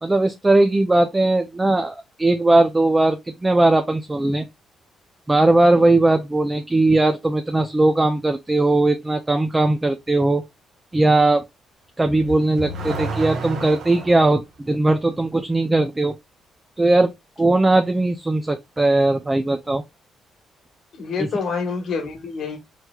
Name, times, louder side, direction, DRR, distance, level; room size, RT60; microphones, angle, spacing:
voice 1, 0.0-4.4 5.3-10.4 10.9-11.4 12.0-16.1 16.8-17.1 17.4-19.8, right 2 dB, 20° right, 0.5 m, -19 dB
Car / Accelerating revving vroom, 12.0-14.3, right 2 dB, 70° right, 1.1 m, -30 dB
voice 2, 20.9-22.6, left 5 dB, 60° left, 1.3 m, -27 dB
4.4 x 3.1 x 2.3 m
cardioid pair, 90°, 0 cm